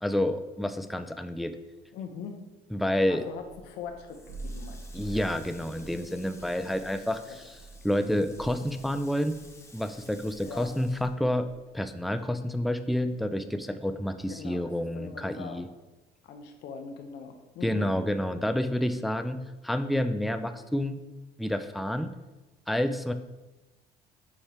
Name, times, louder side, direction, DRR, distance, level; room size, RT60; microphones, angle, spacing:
voice 1, 0.0-1.6 2.7-3.2 4.9-7.4 7.8-9.3 9.7-11.5 11.7-15.7 17.6-21.0 21.4-22.1 22.7-23.1, left 1 dB, ahead, 9 dB, 0.3 m, -29 dB
voice 2, 1.9-2.4 3.1-5.2 5.8-5.9 6.3-6.6 7.2-7.4 10.4-10.7 14.4-15.7 16.2-17.9, left 6 dB, 85° left, 5 dB, 0.7 m, -42 dB
Thunder, 3.3-11.7, right 2 dB, 85° right, 1.0 m, -47 dB
Water tap faucet, 4.0-11.9 12.2-13.5, left 2 dB, 15° left, 1.0 m, -54 dB
7.2 x 4.3 x 3.3 m, 1.1 s
cardioid pair, 110°, 17 cm